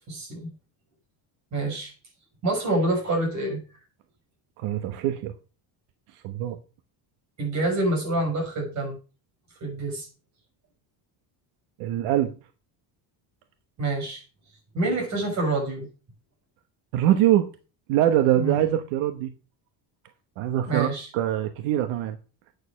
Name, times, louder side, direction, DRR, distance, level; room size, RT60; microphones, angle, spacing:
voice 1, 0.1-0.5 1.5-1.9 2.4-3.6 7.4-9.0 9.6-10.1 13.8-14.2 14.7-15.9 18.4-18.6 20.7-21.1, right 2 dB, 35° right, 5.9 m, -26 dB
voice 2, 4.6-5.3 6.1-6.6 11.8-12.3 16.9-17.5 17.9-19.3 20.4-22.2, right 12 dB, 80° right, 1.2 m, -23 dB
9.3 x 6.7 x 6.3 m
cardioid pair, 175°, 49 cm